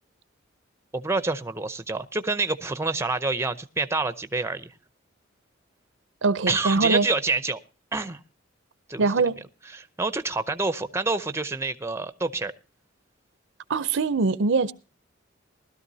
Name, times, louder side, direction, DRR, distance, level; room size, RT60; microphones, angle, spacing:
voice 1, 0.9-4.7 6.5-7.6 7.9-8.2 8.9-9.1 9.7-12.5, right 3 dB, 15° right, 0.6 m, -27 dB
voice 2, 6.2-7.1 9.0-9.4 13.7-14.7, right 4 dB, 65° right, 0.6 m, -22 dB
20.0 x 13.0 x 2.7 m
head